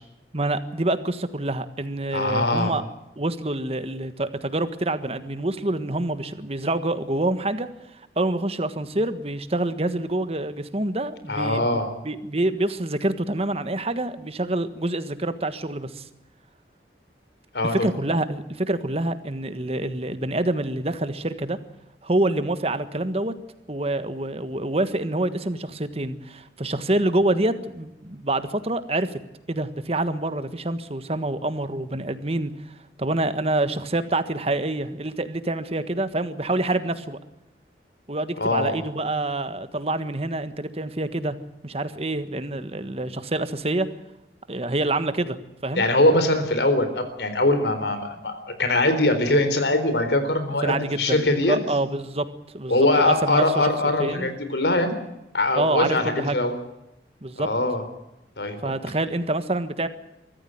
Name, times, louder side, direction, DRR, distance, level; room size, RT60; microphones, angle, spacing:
voice 1, 0.3-2.8 3.2-7.7 8.2-11.6 12.0-16.0 17.8-21.6 22.0-23.3 23.7-29.2 29.5-32.5 33.0-37.2 38.1-41.4 41.6-43.9 44.5-45.4 45.6-45.8 50.6-52.3 52.5-53.7 54.0-54.3 55.5-56.4 57.2-57.5 58.6-59.9, right 2 dB, 35° right, 11 dB, 1.5 m, -26 dB
voice 2, 2.1-2.7 11.3-11.9 17.5-17.9 38.4-38.7 45.7-51.6 52.7-54.9 55.3-56.5 57.4-57.8 58.4-58.6, left 2 dB, 75° left, 9 dB, 4.0 m, -22 dB
23.5 x 14.5 x 9.4 m, 0.91 s
head